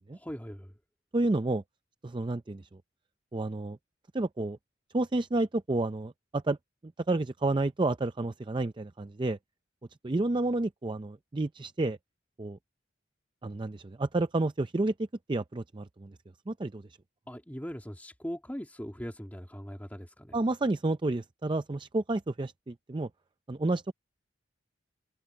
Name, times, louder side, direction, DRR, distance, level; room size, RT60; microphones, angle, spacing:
voice 1, 0.1-0.7 17.3-20.4, equal, 10° left, 2.3 m, -40 dB
voice 2, 1.1-1.6 2.0-2.7 3.3-3.8 4.1-4.6 4.9-6.6 7.1-9.4 10.0-12.0 12.4-12.6 13.4-16.1 16.5-16.8 20.3-23.1 23.5-23.9, right 2 dB, 25° right, 0.5 m, -30 dB
open air
head